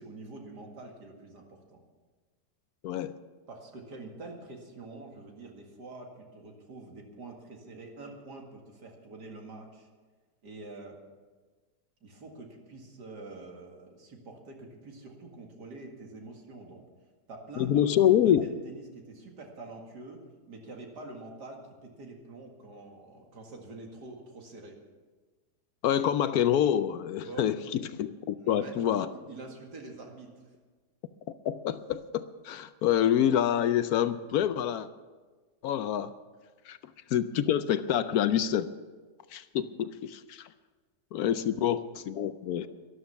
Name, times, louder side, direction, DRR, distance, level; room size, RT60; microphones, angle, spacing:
voice 1, 0.0-1.8 3.5-9.9 10.4-11.0 12.0-16.8 17.3-24.8 27.2-27.5 28.4-30.6 41.3-41.4 42.6-42.7, right 3 dB, 75° right, 1 dB, 2.6 m, -46 dB
voice 2, 2.8-3.2 17.6-18.5 25.8-29.1 31.4-34.9 35.6-36.1 36.7-38.7 39.3-40.5 41.1-42.7, left 10 dB, 70° left, 13 dB, 1.0 m, -27 dB
12.5 x 12.0 x 6.9 m, 1.4 s
omnidirectional pair, 1.8 m